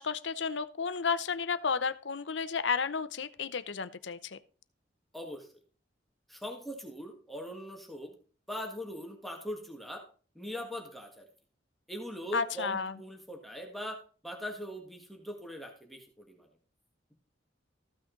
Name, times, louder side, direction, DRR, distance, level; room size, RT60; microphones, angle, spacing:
voice 1, 0.0-4.4 12.3-13.0, left 5 dB, 75° left, 14 dB, 0.7 m, -32 dB
voice 2, 5.1-5.5 6.3-8.1 8.5-10.0 10.3-11.3 11.9-14.0 14.2-16.5, equal, ahead, 1 dB, 1.6 m, -41 dB
14.0 x 6.1 x 3.9 m, 0.39 s
head